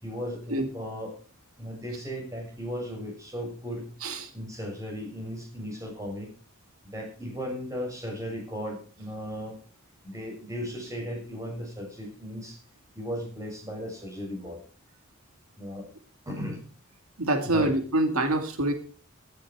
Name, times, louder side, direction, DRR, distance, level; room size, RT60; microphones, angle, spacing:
voice 1, 0.0-1.2 1.6-3.9 4.3-6.3 6.8-9.6 10.0-12.6 13.0-14.6 15.6-15.8 16.3-16.6 17.4-17.7, equal, 15° right, 1 dB, 7.0 m, -36 dB
voice 2, 17.2-18.7, right 2 dB, 85° right, 6 dB, 2.3 m, -25 dB
16.0 x 12.5 x 4.8 m, 0.38 s
head